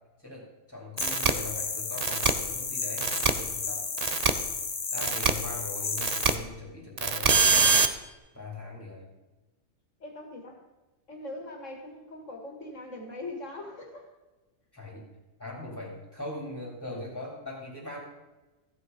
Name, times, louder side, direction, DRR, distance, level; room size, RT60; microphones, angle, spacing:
voice 1, 0.2-3.9 4.9-7.4 8.3-9.1 14.7-15.1 15.4-18.0, left 2 dB, 10° left, -3 dB, 2.9 m, -40 dB
sound 1, 1.0-6.4, left 5 dB, 45° left, 1.2 m, -33 dB
sound 2, 1.0-1.3 2.0-2.3 3.0-3.3 4.0-4.3 5.0-5.3 6.0-6.3 7.0-7.9, right 5 dB, 40° right, 0.7 m, -23 dB
voice 2, 10.0-10.7 11.1-14.1, left 2 dB, 65° left, 3 dB, 2.5 m, -41 dB
15.0 x 8.4 x 5.3 m, 1.1 s
omnidirectional pair, 1.4 m